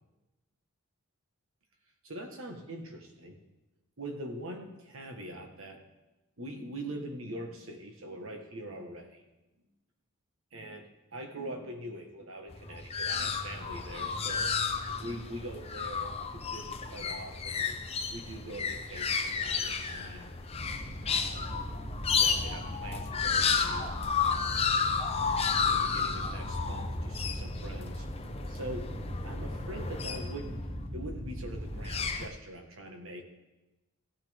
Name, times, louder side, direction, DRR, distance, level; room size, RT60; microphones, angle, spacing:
voice 1, 2.0-3.4 4.0-5.8 6.4-9.2 10.5-14.5 14.9-17.8 18.1-20.3 21.0-21.8 22.1-24.6 25.6-28.1 28.5-33.2, right 1 dB, 65° right, 4 dB, 1.5 m, -43 dB
sound 1, 12.5-30.7 31.6-32.3, left 6 dB, 25° left, 0.6 m, -32 dB
sound 2, 20.5-32.0, equal, 30° right, 5.0 m, -39 dB
16.0 x 9.3 x 3.6 m, 1.0 s
head